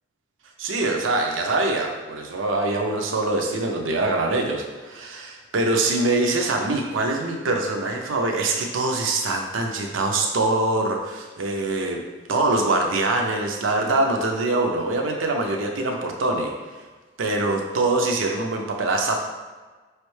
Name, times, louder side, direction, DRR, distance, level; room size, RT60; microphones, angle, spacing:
voice 1, 0.6-12.0 12.3-16.5 17.2-19.2, right 2 dB, 90° right, 2 dB, 0.5 m, -24 dB
5.2 x 3.2 x 3.1 m, 1.4 s
head